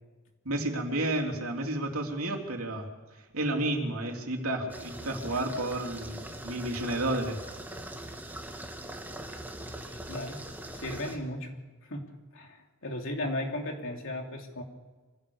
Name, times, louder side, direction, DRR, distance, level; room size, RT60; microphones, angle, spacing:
voice 1, 0.4-2.9 3.3-7.4, right 1 dB, 75° right, 2 dB, 3.3 m, -31 dB
sound 1, 4.7-11.2, right 1 dB, 10° right, 2.1 m, -41 dB
voice 2, 9.9-10.4 10.8-11.5 11.8-14.6, left 1 dB, 65° left, 2 dB, 3.3 m, -36 dB
25.0 x 16.0 x 7.1 m, 1.3 s
head